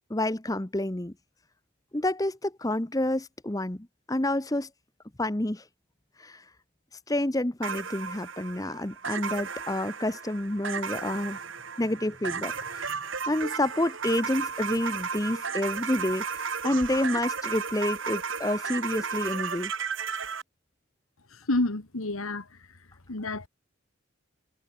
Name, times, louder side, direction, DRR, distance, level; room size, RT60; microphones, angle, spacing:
voice 1, 0.1-1.1 1.9-4.7 5.2-5.6 6.2-6.4 7.1-11.4 11.8-19.7, left 1 dB, 15° left, 0.9 m, -29 dB
sound 1, 7.6-20.4, right 6 dB, 65° right, 2.1 m, -34 dB
voice 2, 21.3-22.5 23.1-23.5, left 2 dB, 85° left, 1.9 m, -29 dB
head